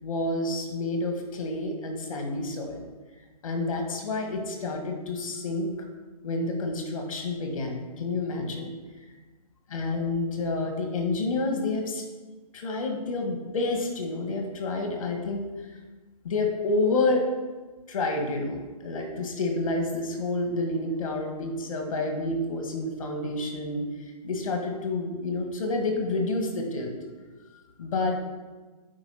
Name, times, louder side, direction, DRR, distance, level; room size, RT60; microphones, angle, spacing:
voice 1, 0.0-2.8 3.4-5.7 6.2-8.7 9.7-12.0 12.5-15.4 16.2-17.3 17.9-23.8 24.2-26.9 27.8-28.3, left 2 dB, 55° left, 2 dB, 1.9 m, -29 dB
8.8 x 4.9 x 5.8 m, 1.3 s
hypercardioid pair, 170°, 20 cm